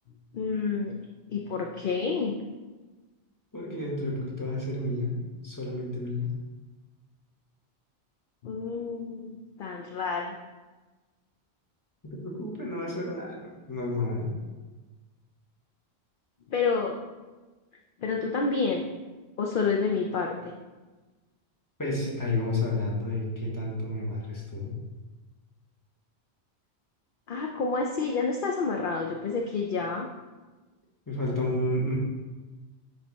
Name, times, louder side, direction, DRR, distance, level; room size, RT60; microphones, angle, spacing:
voice 1, 0.3-2.4 8.4-10.4 16.5-17.0 18.0-18.9 19.4-20.5 27.3-30.1, left 4 dB, 60° left, 1 dB, 0.7 m, -29 dB
voice 2, 3.5-5.2 5.4-6.3 12.2-14.3 21.8-24.7 31.1-32.0, left 2 dB, 20° left, -4 dB, 1.5 m, -31 dB
9.7 x 3.4 x 4.1 m, 1.2 s
omnidirectional pair, 1.1 m